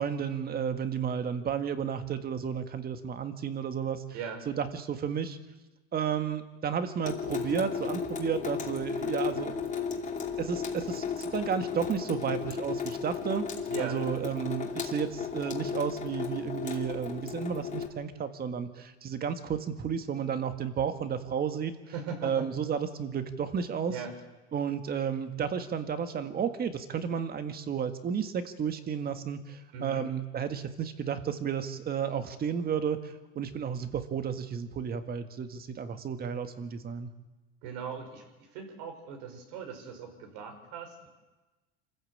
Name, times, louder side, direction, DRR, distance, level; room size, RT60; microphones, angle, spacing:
voice 1, 0.0-4.0 4.5-5.4 5.9-9.6 10.4-13.5 13.8-21.7 22.2-23.9 24.5-37.1, right 7 dB, 30° right, 9 dB, 1.8 m, -32 dB
Water tap faucet / Sink (filling or washing) / Drip, 7.0-17.9, left 6 dB, 20° left, 2.8 m, -34 dB
voice 2, 13.7-14.0 21.9-22.5 23.9-24.1 29.7-30.0 37.6-38.3 38.5-41.1, right 6 dB, 65° right, 5 dB, 5.3 m, -39 dB
26.5 x 14.5 x 8.6 m, 1.1 s
supercardioid pair, 130°, 33 cm